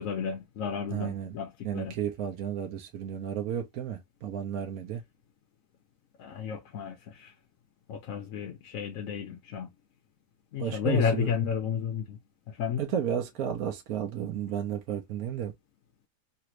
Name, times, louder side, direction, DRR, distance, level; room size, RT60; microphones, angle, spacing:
voice 1, 0.0-1.9 6.2-7.3 7.9-9.7 10.5-12.2 12.5-12.8, left 7 dB, 60° left, 1.0 m, -32 dB
voice 2, 0.9-1.4 1.6-5.0 10.6-11.3 12.8-15.5, right 9 dB, 65° right, 1.1 m, -33 dB
3.3 x 2.5 x 2.9 m
omnidirectional pair, 1.8 m